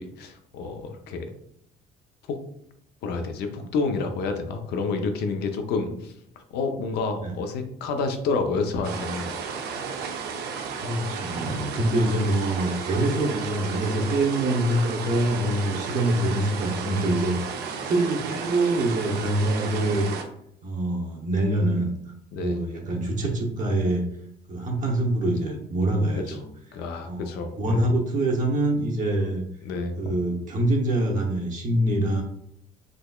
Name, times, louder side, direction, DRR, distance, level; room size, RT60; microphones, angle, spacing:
voice 1, 0.0-1.3 2.3-2.4 3.0-6.1 6.5-9.9 22.3-22.6 26.2-26.4 26.7-27.9 29.6-30.2, left 4 dB, 80° left, 6 dB, 0.6 m, -29 dB
sound 1, 8.8-20.2, right 6 dB, 75° right, 0.6 m, -33 dB
voice 2, 10.8-17.5 17.8-20.1 20.6-21.9 22.4-24.0 24.5-26.4 27.0-29.4 30.0-32.2, right 1 dB, 50° right, 0 dB, 0.8 m, -25 dB
3.9 x 3.2 x 2.3 m, 0.73 s
cardioid pair, 110°, 17 cm